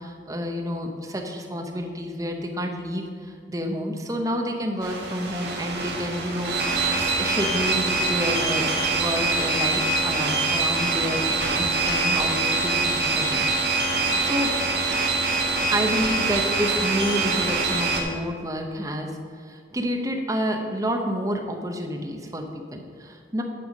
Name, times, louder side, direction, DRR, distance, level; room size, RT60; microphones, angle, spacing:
voice 1, 0.0-13.5 13.8-14.5 15.7-23.4, equal, 20° right, 3 dB, 0.8 m, -29 dB
sound 1, 4.8-18.0, right 3 dB, 70° right, 1.5 m, -24 dB
9.1 x 5.6 x 5.2 m, 2.2 s
head